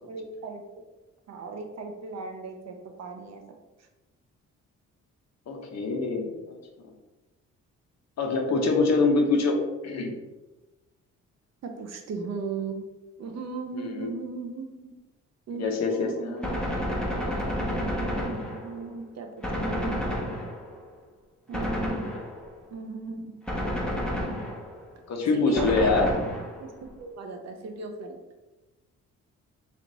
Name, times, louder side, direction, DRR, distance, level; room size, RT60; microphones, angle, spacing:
voice 1, 0.0-0.6 1.3-3.4 11.6-12.8 13.2-15.0 15.5-16.6 17.6-19.3 19.6-20.0 21.5-22.1 22.7-23.6 25.3-26.0 26.6-28.2, right 4 dB, 60° right, 4 dB, 0.8 m, -37 dB
voice 2, 5.5-6.6 8.2-9.6 9.8-10.1 13.8-14.1 15.6-16.5 25.1-26.1, left 3 dB, 60° left, 2 dB, 0.9 m, -25 dB
Gunshot gunfire, 16.4-18.9 19.4-20.8 21.5-22.6 23.5-24.9 25.6-26.8, equal, 5° left, 1.0 m, -30 dB
3.2 x 3.2 x 3.9 m, 1.1 s
cardioid pair, 90°, 30 cm